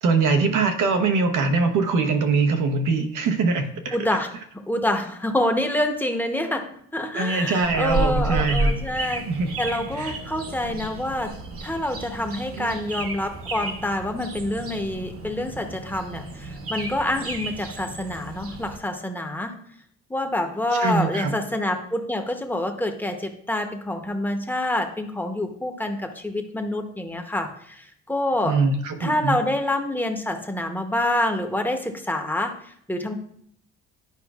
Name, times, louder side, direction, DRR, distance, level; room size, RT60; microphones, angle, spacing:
voice 1, 0.0-4.1 7.1-8.8 9.3-9.5 10.0-10.2 12.5-12.8 20.7-21.3 28.4-29.4, right 4 dB, 90° right, 5 dB, 0.9 m, -23 dB
voice 2, 3.9-4.3 4.7-9.2 9.6-19.5 20.1-28.5 29.0-33.2, left 1 dB, 5° left, 5 dB, 0.8 m, -27 dB
sound 1, 7.6-18.8, right 2 dB, 50° right, 1.0 m, -32 dB
10.5 x 4.9 x 2.4 m, 0.67 s
cardioid pair, 90°, 30 cm